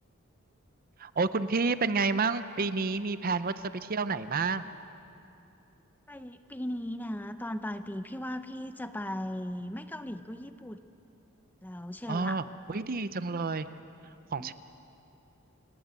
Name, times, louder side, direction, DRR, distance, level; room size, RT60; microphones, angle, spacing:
voice 1, 1.0-4.7 12.1-13.7 14.3-14.5, right 4 dB, 40° right, 12 dB, 0.6 m, -30 dB
voice 2, 6.1-10.8 11.6-12.4 14.4-14.5, left 1 dB, 10° left, 10 dB, 0.6 m, -37 dB
29.0 x 18.0 x 8.2 m, 2.8 s
head